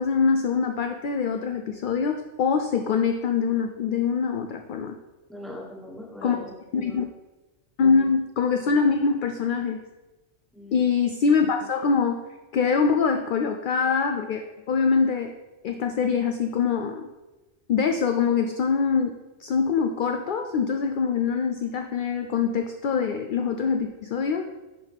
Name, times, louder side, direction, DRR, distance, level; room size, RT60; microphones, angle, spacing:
voice 1, 0.0-5.0 6.2-6.4 6.7-7.1 7.8-9.8 10.7-12.2 12.5-15.3 15.6-17.1 17.7-19.1 19.4-24.5, left 5 dB, 60° left, 5 dB, 0.5 m, -24 dB
voice 2, 5.3-7.0 10.5-10.9, left 1 dB, ahead, -4 dB, 1.3 m, -40 dB
10.5 x 4.0 x 3.5 m, 1.1 s
omnidirectional pair, 1.2 m